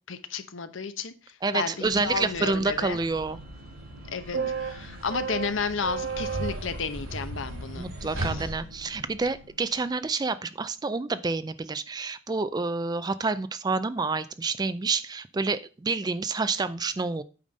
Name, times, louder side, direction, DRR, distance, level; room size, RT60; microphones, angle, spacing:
voice 1, 0.1-1.1 1.5-3.0 4.1-7.9 8.3-8.4, left 5 dB, 70° left, 11 dB, 0.8 m, -32 dB
voice 2, 1.4-3.4 7.8-17.2, right 4 dB, 20° right, 14 dB, 0.3 m, -28 dB
sound 1, 1.8-9.6, right 3 dB, 75° right, 3.0 m, -35 dB
8.5 x 5.2 x 5.2 m, 0.35 s
head